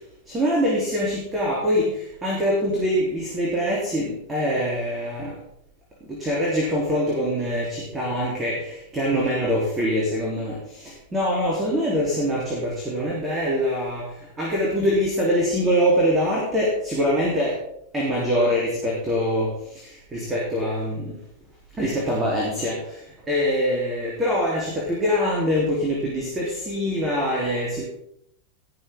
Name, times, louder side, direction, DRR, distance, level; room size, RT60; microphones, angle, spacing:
voice 1, 0.3-5.3 6.1-14.0 14.4-17.6 17.9-19.5 19.8-21.2 21.8-23.0 23.3-27.8, equal, 15° right, -3 dB, 3.3 m, -24 dB
19.0 x 7.0 x 3.7 m, 0.73 s
figure-of-eight pair, 90°, 0 cm